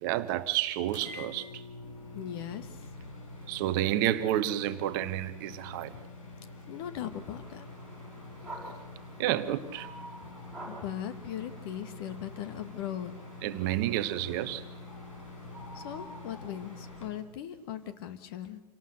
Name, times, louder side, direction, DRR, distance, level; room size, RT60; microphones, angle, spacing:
voice 1, 0.0-1.6 3.5-6.0 9.2-9.9 13.4-14.6, right 13 dB, 35° right, 1.0 m, -30 dB
sound 1, 0.9-17.1, left 3 dB, 55° left, 5.3 m, -46 dB
voice 2, 2.1-2.8 5.9-6.0 6.7-7.6 10.7-13.1 15.7-18.6, left 10 dB, 35° left, 1.7 m, -39 dB
sound 2, 7.0-17.0, right 1 dB, ahead, 5.4 m, -50 dB
27.5 x 18.5 x 6.6 m
figure-of-eight pair, 110°, 20 cm